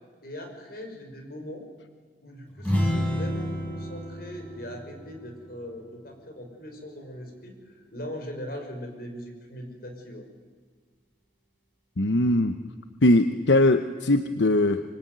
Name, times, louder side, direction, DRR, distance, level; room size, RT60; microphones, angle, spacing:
voice 1, 0.2-1.7 2.2-10.3, equal, 55° left, 3 dB, 5.8 m, -40 dB
sound 1, 2.6-6.3, equal, 10° left, 6.7 m, -30 dB
voice 2, 12.0-12.5 13.0-14.8, left 1 dB, 85° left, 9 dB, 1.0 m, -21 dB
25.5 x 24.0 x 9.4 m, 1.5 s
head